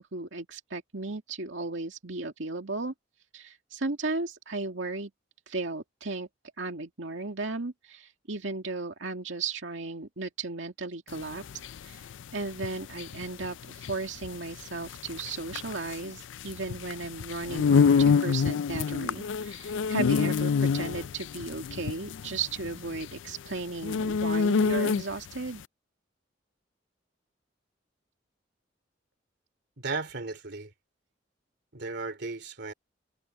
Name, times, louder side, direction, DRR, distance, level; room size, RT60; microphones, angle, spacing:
voice 1, 0.0-2.9 3.3-5.1 5.5-6.3 6.6-11.4 11.8-25.6, right 3 dB, 85° right, 2.2 m, -35 dB
sound 1, 11.1-25.3, left 5 dB, 80° left, 0.4 m, -27 dB
voice 2, 29.8-30.7 31.7-32.7, right 3 dB, 65° right, 3.0 m, -35 dB
head